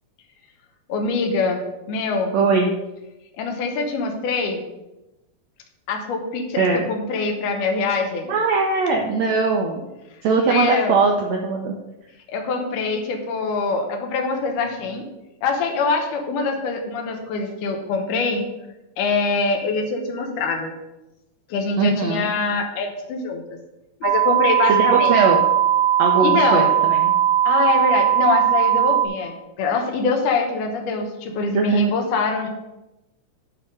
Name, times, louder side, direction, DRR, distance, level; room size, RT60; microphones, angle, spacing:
voice 1, 0.9-1.6 1.9-2.3 3.4-4.6 5.9-8.3 10.5-11.0 12.3-15.1 15.4-18.4 19.0-20.7 21.5-23.4 24.0-25.1 26.2-26.7 27.5-32.5, left 4 dB, 80° left, 3 dB, 2.6 m, -24 dB
voice 2, 2.3-2.7 6.6-6.8 8.3-9.8 10.2-11.7 21.8-22.3 24.7-25.4 26.0-27.1 31.5-31.9, right 4 dB, 75° right, 1 dB, 1.7 m, -20 dB
sound 1, 24.0-29.1, right 11 dB, 90° right, 2.6 m, -18 dB
9.8 x 3.5 x 6.4 m, 0.98 s
omnidirectional pair, 3.7 m